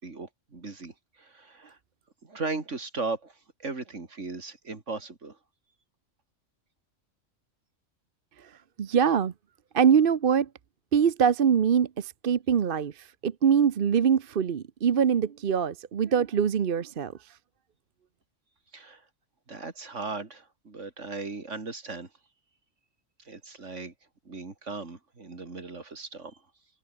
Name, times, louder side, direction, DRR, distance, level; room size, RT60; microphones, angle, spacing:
voice 1, 0.0-1.8 2.2-5.4 18.7-19.0 19.5-22.1 23.2-23.9 24.2-26.4, right 3 dB, 70° right, 3.2 m, -37 dB
voice 2, 8.4-9.3 9.7-10.5 10.9-17.3, right 7 dB, 50° right, 0.9 m, -24 dB
omnidirectional pair, 1.3 m